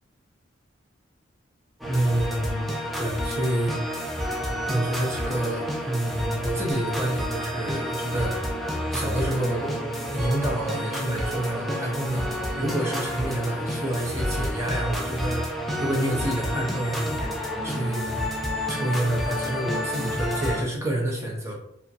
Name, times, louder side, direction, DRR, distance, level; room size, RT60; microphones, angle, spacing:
sound 1, 1.8-20.6, equal, ahead, 0.5 m, -29 dB
voice 1, 1.9-2.7 3.0-3.9 4.7-8.4 8.9-9.7 10.1-12.3 12.6-17.1 17.6-18.2 18.7-21.6, right 1 dB, 15° right, -1 dB, 0.8 m, -28 dB
4.9 x 2.2 x 2.7 m, 0.74 s
head